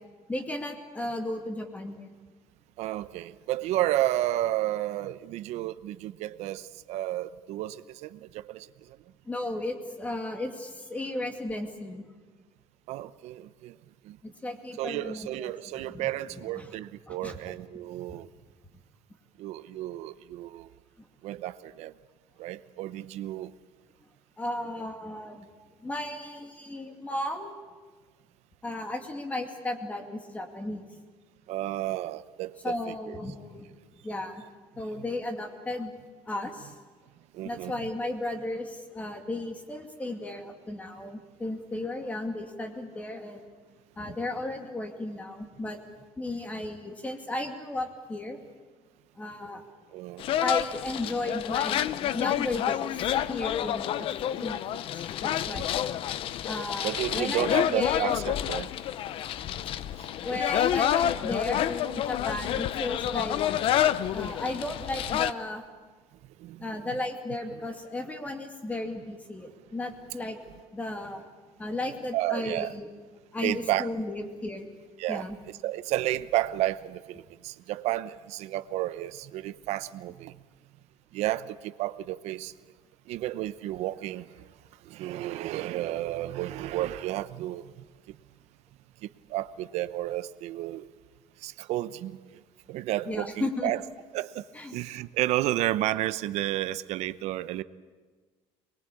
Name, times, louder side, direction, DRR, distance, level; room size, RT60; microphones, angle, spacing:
voice 1, 0.3-2.1 9.3-12.0 14.2-15.5 15.8-16.1 16.6-16.7 17.1-17.4 18.1-18.2 24.4-25.5 25.8-27.5 28.6-30.8 32.6-33.7 34.0-34.4 34.8-35.9 36.3-36.7 37.4-43.4 44.0-45.8 46.2-48.4 49.2-49.6 50.4-52.9 53.3-54.1 54.4-55.7 56.5-58.1 60.2-63.4 64.1-65.6 66.6-70.4 70.7-71.2 71.6-72.9 73.3-74.7 75.1-75.4 93.1-93.7 94.5-94.8, left 2 dB, 10° left, 4 dB, 2.4 m, -34 dB
voice 2, 2.8-9.0 12.9-13.8 14.0-14.2 14.8-18.3 19.4-20.7 21.2-21.9 22.4-23.5 31.5-33.2 34.9-35.0 37.3-37.7 49.9-50.2 54.3-54.4 55.5-55.6 56.8-58.7 66.4-66.9 72.1-72.7 73.4-73.9 75.0-80.4 81.1-82.5 83.1-84.3 84.8-87.7 88.1-88.2 89.0-90.9 91.4-92.2 92.7-93.8 94.1-94.4 94.7-97.6, right 14 dB, 70° right, 14 dB, 0.9 m, -32 dB
sound 1, 50.2-65.3, left 11 dB, 50° left, 0.7 m, -29 dB
24.5 x 21.5 x 8.5 m, 1.4 s
cardioid pair, 165°, 12 cm